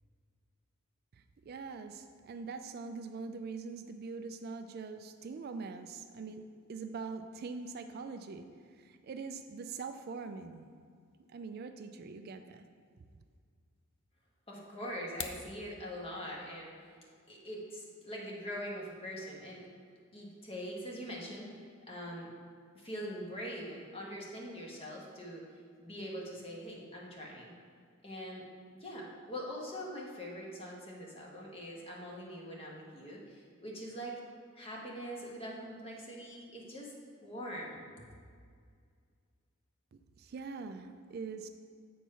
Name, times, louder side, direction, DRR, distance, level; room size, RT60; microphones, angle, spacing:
voice 1, 1.1-10.7 11.3-12.7 40.2-41.5, right 4 dB, 45° right, 8 dB, 0.3 m, -43 dB
voice 2, 14.5-16.9 17.3-19.7 20.1-22.3 22.7-25.4 25.8-27.5 28.0-28.4 28.7-34.2 34.5-36.9 37.2-37.8, equal, 25° left, -2 dB, 1.4 m, -43 dB
sound 1, 14.9-15.5, left 7 dB, 75° left, 0.6 m, -41 dB
8.2 x 4.5 x 5.5 m, 2.1 s
head